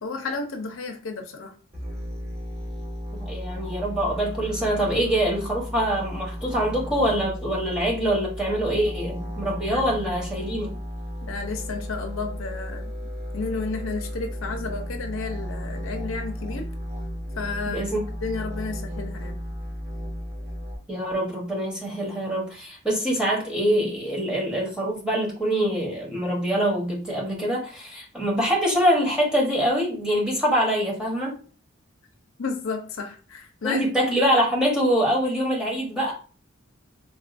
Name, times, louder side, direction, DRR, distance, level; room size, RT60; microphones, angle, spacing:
voice 1, 0.0-1.5 9.7-10.1 11.2-12.9 13.3-16.7 17.4-17.8 18.2-19.4 32.4-33.8, left 4 dB, 75° left, 4 dB, 0.6 m, -32 dB
sound 1, 1.7-20.8, equal, 30° right, 1.1 m, -34 dB
voice 2, 3.1-10.7 17.7-18.0 20.9-31.4 33.6-36.1, equal, 5° right, -4 dB, 1.0 m, -24 dB
3.7 x 2.4 x 2.5 m, 0.38 s
head